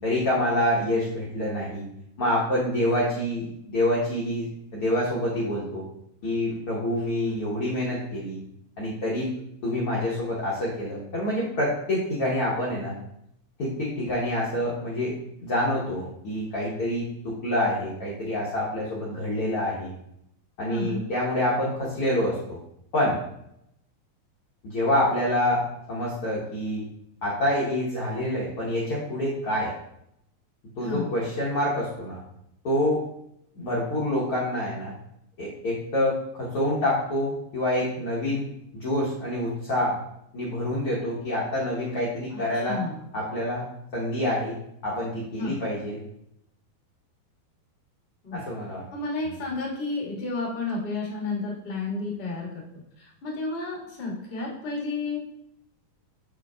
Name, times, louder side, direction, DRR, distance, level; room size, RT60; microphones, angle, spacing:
voice 1, 0.0-1.8 2.2-5.8 6.2-8.4 8.8-9.3 9.6-12.9 13.6-19.9 20.6-22.6 22.9-23.2 24.6-26.8 27.2-29.7 30.8-32.2 32.6-33.0 33.5-34.9 35.4-38.5 38.7-40.0 40.3-42.8 43.1-43.7 43.9-44.6 44.8-46.0 48.3-48.8 49.2-49.3, left 1 dB, 85° left, -5 dB, 1.2 m, -27 dB
voice 2, 20.7-21.1 30.8-31.1 42.3-42.4 42.6-43.0 45.4-45.6 48.2-48.4 48.9-52.5 53.0-55.2, left 3 dB, 50° left, -5 dB, 0.7 m, -31 dB
7.8 x 5.1 x 2.3 m, 0.79 s
omnidirectional pair, 4.3 m